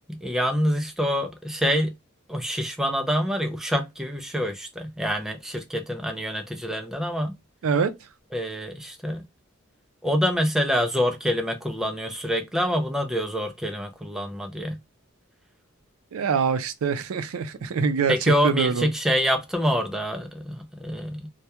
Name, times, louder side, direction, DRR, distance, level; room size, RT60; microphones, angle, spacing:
voice 1, 0.1-1.9 2.3-7.3 8.3-9.2 10.0-14.8 18.1-21.3, equal, ahead, 0.3 m, -26 dB
voice 2, 16.1-18.9, right 6 dB, 80° right, 0.4 m, -24 dB
2.2 x 2.1 x 2.8 m
head